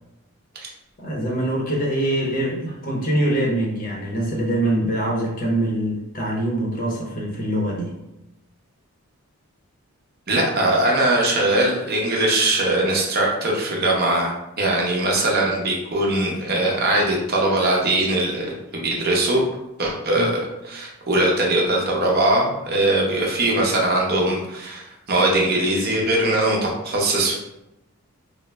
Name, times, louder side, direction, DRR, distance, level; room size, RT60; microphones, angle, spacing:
voice 1, 1.0-7.9 20.1-20.3, right 1 dB, 40° left, -1 dB, 0.6 m, -24 dB
voice 2, 10.3-19.4 19.8-27.3, right 1 dB, 45° right, -1 dB, 0.7 m, -21 dB
3.3 x 2.0 x 3.3 m, 0.89 s
head